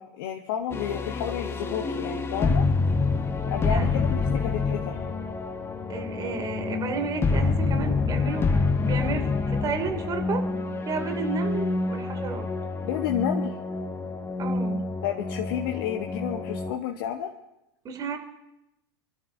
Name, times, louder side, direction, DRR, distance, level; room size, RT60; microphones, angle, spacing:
voice 1, 0.0-2.7 3.5-5.1 12.8-13.5 15.0-17.3, left 10 dB, 60° left, 3 dB, 1.1 m, -31 dB
sound 1, 0.7-16.7, left 4 dB, 20° left, 1.0 m, -27 dB
voice 2, 3.6-4.0 5.9-10.5 10.9-12.5 14.4-14.8 17.8-18.2, right 5 dB, 30° right, 5 dB, 2.4 m, -32 dB
30.0 x 12.0 x 2.7 m, 0.89 s
hypercardioid pair, 90°, 13 cm